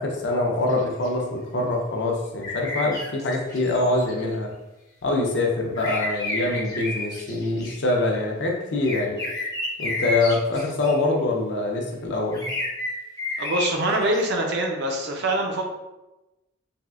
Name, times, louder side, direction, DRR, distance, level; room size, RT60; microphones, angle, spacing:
voice 1, 0.0-4.5 5.0-9.2 9.8-12.5, left 2 dB, 60° left, 0 dB, 0.6 m, -24 dB
sound 1, 0.7-1.1 2.4-4.3 5.7-7.7 8.8-10.9 12.3-14.2, left 2 dB, 20° left, 0.6 m, -31 dB
voice 2, 13.4-15.7, right 1 dB, 60° right, 1 dB, 0.5 m, -24 dB
3.4 x 2.4 x 2.3 m, 1.0 s
head